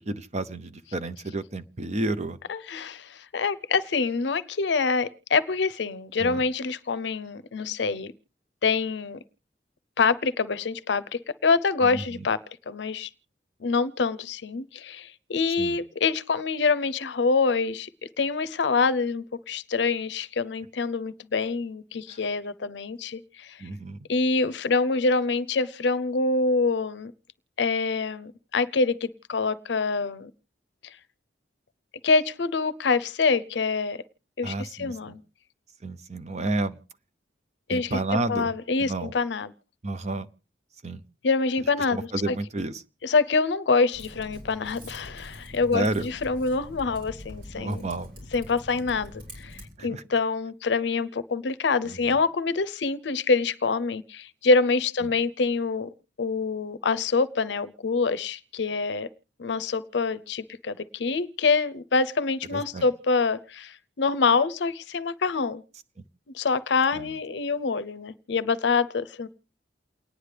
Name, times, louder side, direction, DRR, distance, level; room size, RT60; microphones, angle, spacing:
voice 1, 0.0-2.4 6.2-6.4 11.8-12.3 15.6-15.8 22.1-22.2 23.6-24.0 34.4-35.2 35.8-36.8 37.7-38.5 38.8-39.1 39.8-40.3 40.8-41.0 41.9-42.8 45.7-46.1 47.5-48.1 48.7-48.9 49.8-50.0 51.8-52.2 55.0-55.1 62.5-62.8 67.0-67.2, right 2 dB, 40° right, 12 dB, 0.7 m, -31 dB
voice 2, 2.5-8.1 8.6-9.2 10.0-12.4 12.7-13.1 13.6-17.9 18.2-23.6 24.1-27.1 27.6-30.3 32.0-34.0 34.4-35.2 37.7-38.0 38.3-39.5 41.2-42.3 43.0-47.9 48.3-55.9 56.2-59.1 59.4-65.6 66.3-69.3, left 4 dB, 80° left, 17 dB, 0.6 m, -26 dB
Typing, 43.9-49.7, left 1 dB, 85° right, 6.5 m, -43 dB
29.0 x 9.7 x 3.3 m, 0.36 s
head